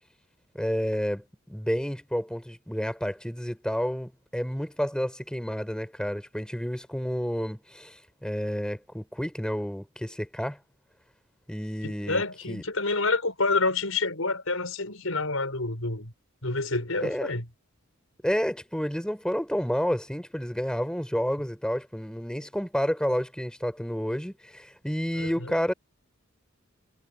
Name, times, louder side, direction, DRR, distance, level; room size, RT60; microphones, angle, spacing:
voice 1, 0.5-10.6 11.5-12.6 17.0-17.3 18.2-25.7, equal, 5° left, 4.1 m, -30 dB
voice 2, 11.8-16.1 16.4-17.5 25.1-25.5, left 3 dB, 85° left, 6.1 m, -28 dB
head